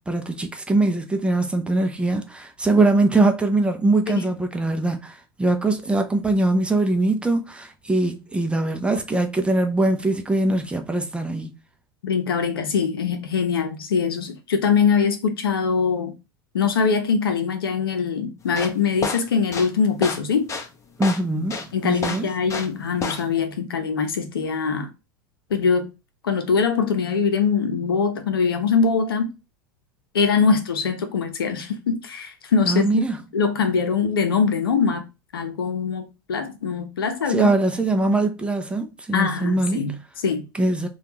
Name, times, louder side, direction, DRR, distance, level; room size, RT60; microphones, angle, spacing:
voice 1, 0.1-11.5 21.0-22.3 32.7-33.2 37.3-39.8 40.6-40.9, right 2 dB, 10° right, 0.6 m, -22 dB
voice 2, 12.0-16.1 16.5-20.5 21.7-24.9 25.5-25.9 26.2-29.3 30.1-33.0 33.3-35.0 35.3-37.5 39.1-40.4, left 5 dB, 80° left, 0.7 m, -22 dB
sound 1, 18.4-22.8 23.0-23.4, left 4 dB, 25° left, 0.8 m, -29 dB
3.4 x 2.4 x 2.9 m
hypercardioid pair, 85°, 12 cm